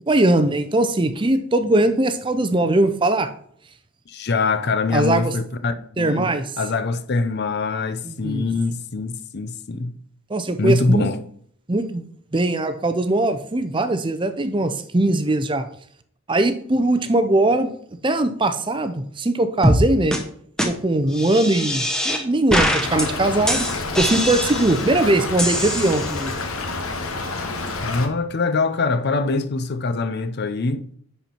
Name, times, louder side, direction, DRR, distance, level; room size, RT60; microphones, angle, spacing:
voice 1, 0.1-3.3 4.9-5.3 6.0-6.5 8.0-8.4 10.3-11.1 11.7-12.0 12.3-15.7 16.3-17.7 18.0-20.2 20.6-23.7 24.0-26.3, right 2 dB, 20° right, 0.5 m, -20 dB
voice 2, 4.1-9.9 10.6-11.2 27.8-30.9, left 3 dB, 50° left, 0.6 m, -23 dB
sound 1, 19.6-19.8 20.1-20.2 20.6-20.7 21.1-22.2 22.5-23.1 23.5-24.9 25.4-26.3, equal, 5° left, 0.8 m, -22 dB
Stream / Trickle dribble, 22.8-28.1, left 3 dB, 70° left, 1.1 m, -28 dB
10.5 x 4.4 x 4.4 m
head